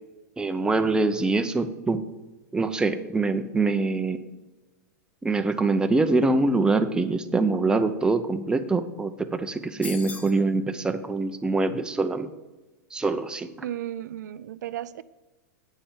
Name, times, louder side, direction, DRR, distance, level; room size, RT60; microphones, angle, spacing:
voice 1, 0.4-2.0 2.5-4.2 5.2-12.3 12.9-13.5, right 3 dB, 10° right, 8 dB, 0.6 m, -24 dB
sound 1, 9.8-10.4, left 4 dB, 15° left, 1.1 m, -38 dB
voice 2, 13.6-15.0, right 12 dB, 75° right, 15 dB, 0.4 m, -34 dB
8.9 x 7.0 x 5.3 m, 1.1 s
hypercardioid pair, 115°, 10 cm